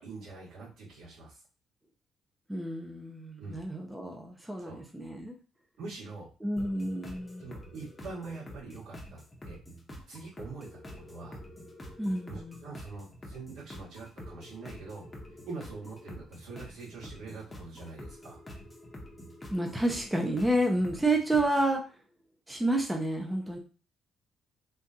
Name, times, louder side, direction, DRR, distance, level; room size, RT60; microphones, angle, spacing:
voice 1, 0.0-1.4 3.4-3.6 4.6-4.8 5.8-6.3 7.4-9.6 10.1-11.4 12.3-18.4, right 3 dB, 80° right, -5 dB, 1.9 m, -44 dB
voice 2, 2.5-5.3 6.4-7.5 12.0-12.7 19.5-21.8 22.5-23.6, right 1 dB, 10° right, 2 dB, 0.7 m, -30 dB
sound 1, 6.6-21.7, left 1 dB, 15° left, 0.9 m, -47 dB
3.6 x 2.5 x 2.8 m, 0.35 s
cardioid pair, 105°, 0 cm